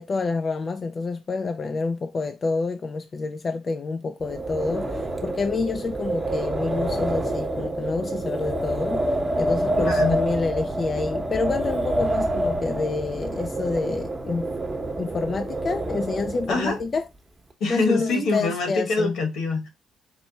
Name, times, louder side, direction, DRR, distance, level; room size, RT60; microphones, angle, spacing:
voice 1, 0.0-14.5 15.0-17.0 17.7-19.2, left 4 dB, 40° left, 0.4 m, -28 dB
Wind, 4.2-16.8, right 1 dB, 20° right, 0.9 m, -27 dB
voice 2, 9.8-10.2 16.5-16.8 17.6-19.7, left 3 dB, 80° left, 1.4 m, -24 dB
4.4 x 2.1 x 4.0 m
cardioid pair, 90°, 0 cm